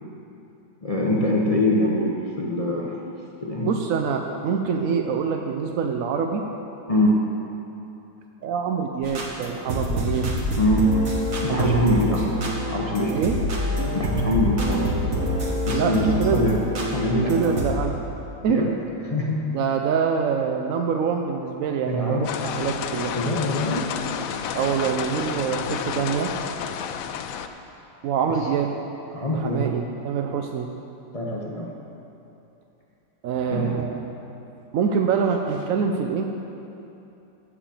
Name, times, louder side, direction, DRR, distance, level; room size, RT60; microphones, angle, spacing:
voice 1, 0.8-3.0 3.4-3.8 6.9-7.2 10.6-10.9 11.4-12.2 12.7-13.2 13.9-14.9 15.7-16.6 16.9-17.6 18.5-18.7 19.1-19.5 21.9-22.4 23.1-23.9 29.1-29.7 31.1-31.7 33.5-33.8, equal, 35° left, -2 dB, 0.6 m, -23 dB
voice 2, 3.6-6.5 8.4-10.3 11.5-12.2 13.1-13.4 15.7-16.4 17.3-18.0 18.4-18.6 19.5-23.2 24.5-26.3 28.0-28.7 29.3-30.7 33.2-34.1 34.7-36.2, right 6 dB, 70° right, 4 dB, 0.8 m, -25 dB
sound 1, 9.0-17.7, left 1 dB, 50° right, 1.6 m, -27 dB
sound 2, 22.2-27.5, left 8 dB, 85° left, 0.7 m, -30 dB
15.0 x 5.0 x 6.9 m, 2.9 s
omnidirectional pair, 2.0 m